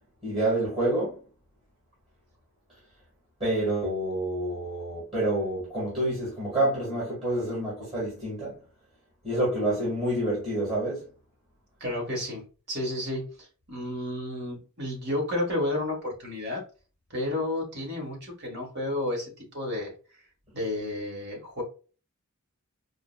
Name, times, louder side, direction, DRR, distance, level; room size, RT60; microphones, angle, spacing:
voice 1, 0.2-1.2 3.4-8.6 9.2-11.0, right 1 dB, 30° right, 1.7 m, -28 dB
voice 2, 11.8-16.6 17.1-19.9 20.5-21.6, left 1 dB, 50° right, 1.4 m, -31 dB
4.9 x 2.1 x 2.2 m
head